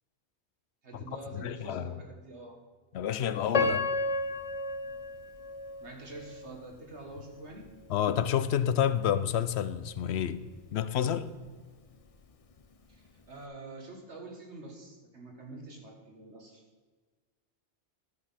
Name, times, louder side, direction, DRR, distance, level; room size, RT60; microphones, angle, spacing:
voice 1, 0.8-2.6 5.8-7.7 12.9-16.6, right 2 dB, 75° right, 2.1 m, -46 dB
voice 2, 1.3-2.0 2.9-3.9 7.9-11.3, left 9 dB, 75° left, 0.8 m, -29 dB
Piano, 3.5-6.5 7.1-7.2 7.9-8.1, left 3 dB, 40° left, 0.6 m, -32 dB
12.0 x 6.3 x 5.7 m
omnidirectional pair, 1.2 m